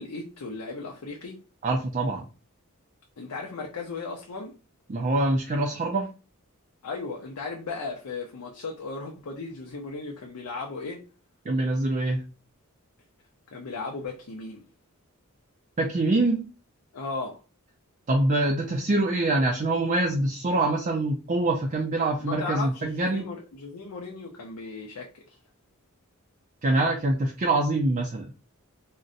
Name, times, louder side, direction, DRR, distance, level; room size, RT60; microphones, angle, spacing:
voice 1, 0.0-1.4 3.2-4.5 6.8-11.0 13.5-14.6 16.9-17.4 22.2-25.4, left 3 dB, 90° left, 0.6 m, -36 dB
voice 2, 1.6-2.3 4.9-6.1 11.5-12.2 15.8-16.5 18.1-23.2 26.6-28.3, right 2 dB, 35° right, 0.4 m, -25 dB
3.8 x 2.1 x 2.5 m
head